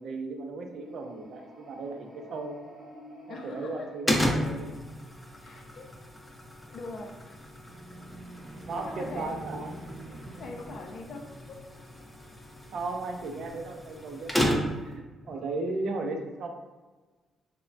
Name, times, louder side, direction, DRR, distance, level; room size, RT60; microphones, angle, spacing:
voice 1, 0.0-2.6 3.3-4.7 8.6-9.8 12.7-16.5, right 3 dB, 65° right, 3 dB, 0.4 m, -36 dB
sound 1, 0.6-5.0 7.6-12.6, right 1 dB, 15° right, 0.8 m, -47 dB
voice 2, 3.3-4.1 5.4-5.9 6.7-7.4 8.7-9.5 10.4-11.6 15.2-15.5, left 3 dB, 60° left, 2 dB, 0.4 m, -42 dB
sound 2, 4.1-15.0, equal, 10° left, 0.5 m, -34 dB
3.0 x 2.1 x 2.5 m, 1.3 s
cardioid pair, 90°, 0 cm